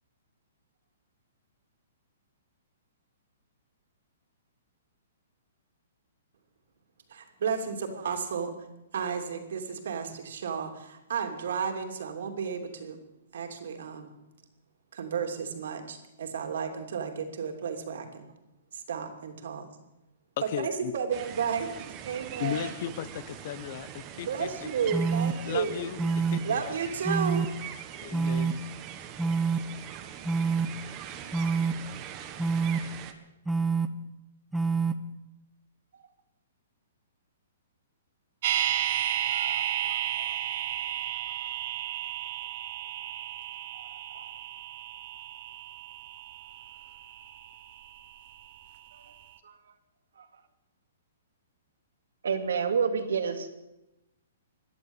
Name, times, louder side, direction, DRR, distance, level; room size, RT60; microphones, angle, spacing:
voice 1, 7.1-8.5 8.9-13.0 13.3-14.1 14.9-18.3 18.7-19.7 20.6-21.8 22.0-22.7 24.3-25.8 26.4-27.4, right 6 dB, 70° right, 2.8 m, -32 dB
voice 2, 20.4-20.9 22.4-24.7 25.4-26.6 28.0-28.6, left 11 dB, 45° left, 0.9 m, -36 dB
sound 1, 21.1-33.1, right 9 dB, 25° right, 1.4 m, -42 dB
sound 2, 24.9-25.3 26.0-26.4 27.0-27.5 28.1-28.5 29.2-29.6 30.3-30.7 31.3-31.7 32.4-32.8 33.5-33.9 34.5-34.9, right 5 dB, 5° right, 0.8 m, -26 dB
sound 3, 38.4-48.5 48.8-48.9, right 12 dB, 50° right, 0.9 m, -33 dB
voice 3, 39.3-40.4 41.1-41.5 43.7-43.8 44.1-44.3 49.4-49.6 50.2-50.3 52.2-53.5, right 6 dB, 85° right, 2.2 m, -31 dB
17.0 x 11.0 x 7.2 m
hypercardioid pair, 155°, 0 cm